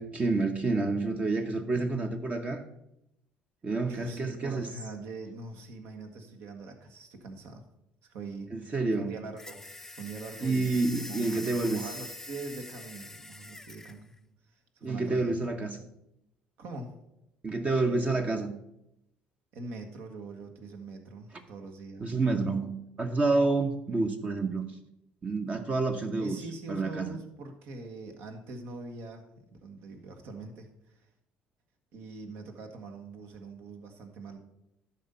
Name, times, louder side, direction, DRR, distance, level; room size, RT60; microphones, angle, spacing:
voice 1, 0.0-2.6 3.6-4.7 8.5-9.1 10.4-11.8 14.8-15.8 17.4-18.5 22.0-24.6 25.2-26.3 26.7-27.1, right 3 dB, 30° right, 4 dB, 0.9 m, -28 dB
voice 2, 3.8-7.6 8.0-14.1 14.5-15.4 16.6-16.9 19.5-22.2 26.2-29.3 29.6-31.1 31.9-34.4, right 3 dB, 65° right, 5 dB, 1.3 m, -43 dB
sound 1, 9.4-14.0, left 1 dB, 10° left, 0.5 m, -44 dB
11.5 x 4.3 x 5.5 m, 0.84 s
hypercardioid pair, 60°, 4 cm